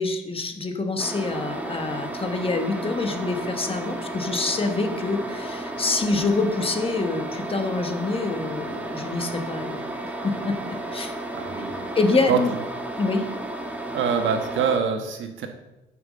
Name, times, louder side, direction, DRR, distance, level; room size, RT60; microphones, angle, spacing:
voice 1, 0.0-9.8 10.2-11.1 11.9-12.5 13.0-13.3, left 3 dB, 30° left, 6 dB, 1.3 m, -26 dB
sound 1, 1.0-14.8, right 1 dB, 5° right, 1.5 m, -33 dB
voice 2, 11.0-11.9 12.3-12.4 13.9-15.5, right 6 dB, 75° right, 5 dB, 1.3 m, -25 dB
8.0 x 5.7 x 6.7 m, 0.97 s
cardioid pair, 90°, 20 cm